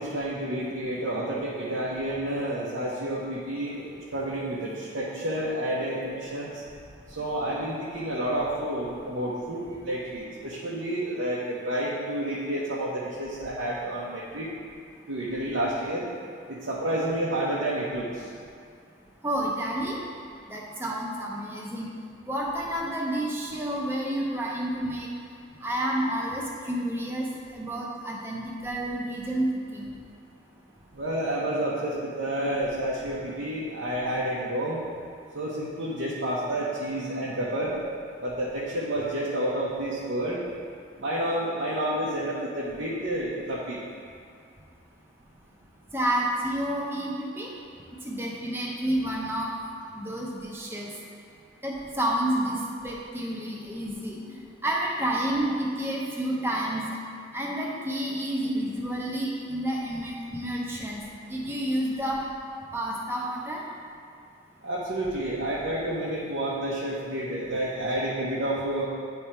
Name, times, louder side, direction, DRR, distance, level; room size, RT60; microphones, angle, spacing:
voice 1, 0.0-6.5 7.1-14.5 15.1-16.1 16.5-18.1 30.9-34.8 35.3-37.7 38.2-40.4 41.0-43.8 64.6-68.9, right 1 dB, 80° right, -7 dB, 1.0 m, -30 dB
voice 2, 19.2-20.0 20.5-21.9 22.3-25.1 25.6-27.3 27.5-29.9 45.9-47.5 48.0-49.6 49.9-50.9 51.6-56.9 57.3-61.0 61.3-62.2 62.7-63.6, right 1 dB, 10° right, -3 dB, 0.8 m, -30 dB
9.8 x 3.5 x 4.4 m, 2.3 s
head